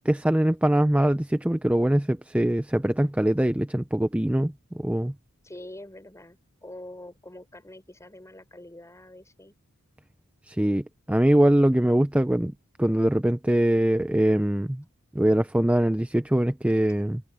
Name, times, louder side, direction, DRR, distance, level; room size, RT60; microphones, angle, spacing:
voice 1, 0.1-5.1 10.5-12.5 12.8-14.8 15.1-17.2, right 1 dB, 5° right, 0.5 m, -22 dB
voice 2, 5.4-9.5, left 1 dB, 15° left, 4.5 m, -45 dB
head